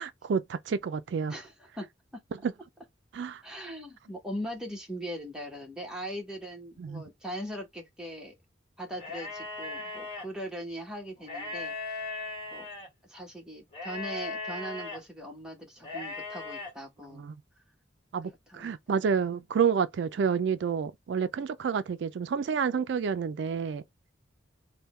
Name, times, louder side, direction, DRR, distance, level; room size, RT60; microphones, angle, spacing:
voice 1, 0.0-1.3 2.4-2.5 3.1-3.4 6.8-7.0 17.2-17.3 18.1-23.8, right 6 dB, 75° right, 0.3 m, -29 dB
voice 2, 1.3-1.9 2.1-2.2 3.4-8.3 8.8-12.0 12.5-12.7 13.1-17.2 18.5-19.0, equal, 5° right, 1.0 m, -40 dB
sound 1, 8.9-10.2 11.2-12.9 13.7-15.0 15.8-16.7, left 3 dB, 30° left, 1.3 m, -38 dB
3.5 x 2.2 x 4.2 m
head